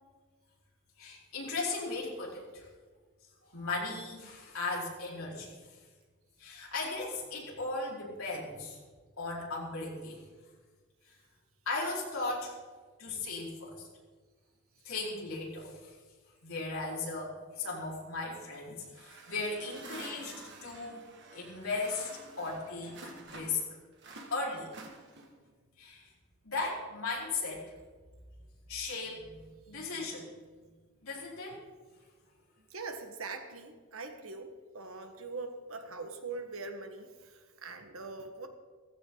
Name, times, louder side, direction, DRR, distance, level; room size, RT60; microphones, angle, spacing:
voice 1, 1.0-2.7 3.5-5.5 6.4-8.8 9.2-10.2 11.6-12.6 13.0-13.9 14.8-15.9 16.4-22.1 22.4-23.8 24.3-24.7 25.8-26.1 26.4-27.7 28.7-30.3 31.0-31.6, left 3 dB, 80° left, -5 dB, 4.9 m, -37 dB
sound 1, 18.9-23.7 24.0-25.5, right 3 dB, 55° right, 2.1 m, -49 dB
voice 2, 32.7-38.5, right 3 dB, 75° right, 6 dB, 1.7 m, -43 dB
15.5 x 15.5 x 4.0 m, 1.5 s
head